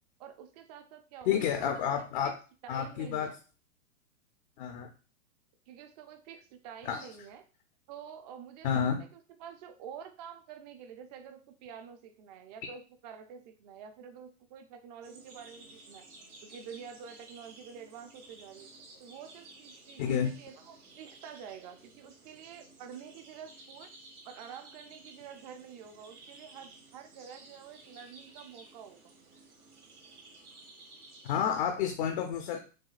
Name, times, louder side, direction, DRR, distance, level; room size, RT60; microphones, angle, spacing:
voice 1, 0.2-1.4 1.7-2.4 2.6-3.3 5.7-7.4 7.9-16.0 16.4-18.7 19.0-23.9 24.2-29.1, right 7 dB, 30° right, 7 dB, 0.4 m, -48 dB
voice 2, 1.2-2.3 2.7-3.3 4.6-4.9 6.8-7.1 8.6-9.0 20.0-20.3 31.2-32.6, left 8 dB, 40° left, 4 dB, 0.5 m, -30 dB
sound 1, 15.0-31.6, right 2 dB, 85° right, 1.6 m, -54 dB
6.1 x 2.3 x 2.4 m, 0.34 s
hypercardioid pair, 135°, 43 cm